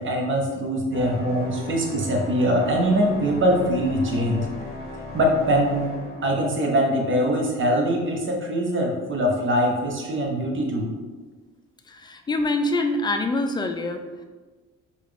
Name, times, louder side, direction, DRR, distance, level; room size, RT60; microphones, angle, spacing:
voice 1, 0.0-4.5 5.1-5.8 6.2-10.9, equal, 40° right, 0 dB, 1.0 m, -22 dB
sound 1, 0.9-6.7, left 2 dB, 30° left, 1.2 m, -36 dB
voice 2, 11.9-14.2, left 2 dB, 15° left, 5 dB, 0.4 m, -25 dB
4.7 x 2.5 x 3.3 m, 1.3 s
cardioid pair, 90°, 30 cm